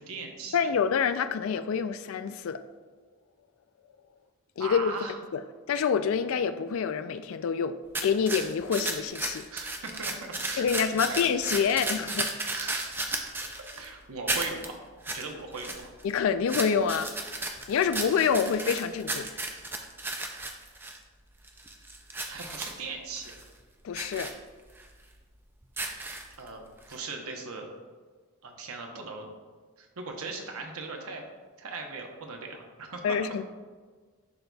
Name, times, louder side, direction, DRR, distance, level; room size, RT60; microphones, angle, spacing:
voice 1, 0.0-0.7 4.6-5.2 9.5-10.7 10.9-11.5 12.5-13.3 13.6-14.8 15.1-15.9 22.3-23.3 26.4-27.7 28.4-29.3 29.8-31.2 31.6-33.2, right 3 dB, 75° right, 3 dB, 0.9 m, -39 dB
voice 2, 0.5-2.6 4.6-4.9 5.3-5.4 5.7-9.5 10.6-12.3 16.0-17.1 17.7-19.3 23.8-24.3 33.0-33.4, left 6 dB, 65° left, 12 dB, 0.3 m, -27 dB
sound 1, 7.9-13.9 14.3-14.7 15.0-15.2 15.5-16.1 16.5-21.0 21.4-22.8 23.2-23.4 23.9-24.3 24.8-24.9 25.6-26.5 26.9-27.0, right 2 dB, 10° right, 0.3 m, -34 dB
10.5 x 3.9 x 2.3 m, 1.4 s
head